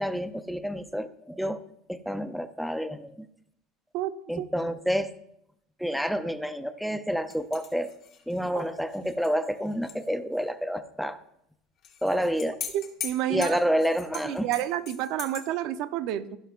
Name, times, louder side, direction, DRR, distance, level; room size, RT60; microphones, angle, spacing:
voice 1, 0.0-1.6 1.9-3.3 4.3-5.1 5.8-7.9 8.3-11.2 12.0-12.6 13.3-14.5, equal, ahead, 10 dB, 0.6 m, -29 dB
voice 2, 3.9-4.5 8.5-8.7 12.7-13.6 14.2-16.4, right 12 dB, 60° right, 11 dB, 0.7 m, -30 dB
sound 1, 7.3-10.1 10.3-10.4 11.8-15.4, left 8 dB, 40° left, 1.7 m, -41 dB
15.0 x 11.0 x 2.5 m, 0.75 s
cardioid pair, 150°, 0 cm